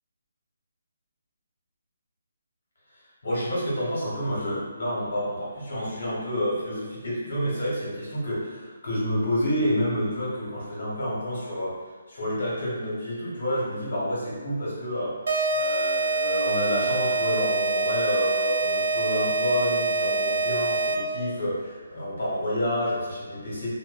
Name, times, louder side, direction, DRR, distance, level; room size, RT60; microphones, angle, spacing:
voice 1, 3.2-11.8 12.1-15.2 15.5-23.7, equal, 65° left, -7 dB, 1.2 m, -29 dB
sound 1, 15.3-21.2, right 3 dB, 75° right, 0.4 m, -25 dB
2.5 x 2.3 x 2.4 m, 1.4 s
hypercardioid pair, 155°, 0 cm